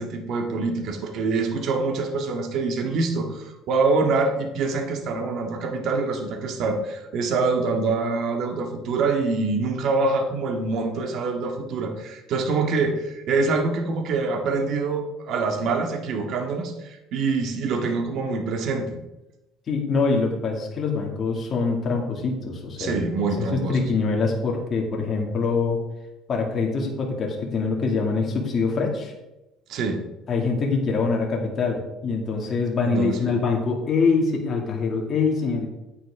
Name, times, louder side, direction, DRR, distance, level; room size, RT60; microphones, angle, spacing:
voice 1, 0.0-19.0 22.8-23.8 29.7-30.0 32.8-33.3, right 3 dB, 60° right, 3 dB, 1.9 m, -25 dB
voice 2, 19.7-23.1 23.4-25.8 26.3-29.1 30.3-35.7, left 4 dB, 40° left, -1 dB, 2.3 m, -24 dB
10.0 x 8.9 x 3.7 m, 0.95 s
cardioid pair, 120°, 0 cm